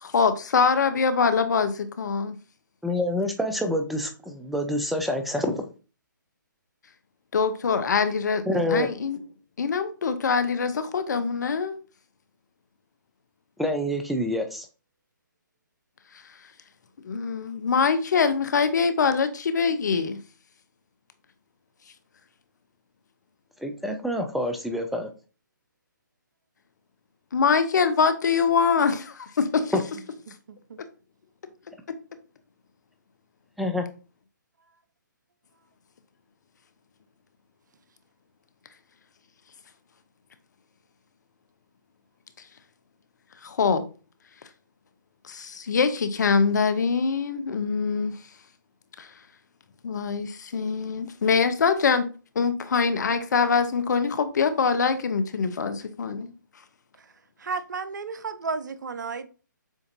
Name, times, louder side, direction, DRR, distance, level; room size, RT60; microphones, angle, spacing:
voice 1, 0.0-2.4 7.3-9.2 9.6-11.8 17.1-20.2 27.3-29.8 43.4-43.8 45.3-48.1 49.0-49.1 49.8-52.1 52.4-56.3, left 5 dB, 60° left, 0.7 m, -24 dB
voice 2, 2.8-5.6 8.5-8.9 13.6-14.7 23.6-25.1 29.7-29.8 33.6-33.9, left 1 dB, ahead, 0.4 m, -27 dB
voice 3, 57.4-59.3, right 4 dB, 65° right, 0.6 m, -32 dB
7.2 x 2.6 x 2.5 m
figure-of-eight pair, 140°, 11 cm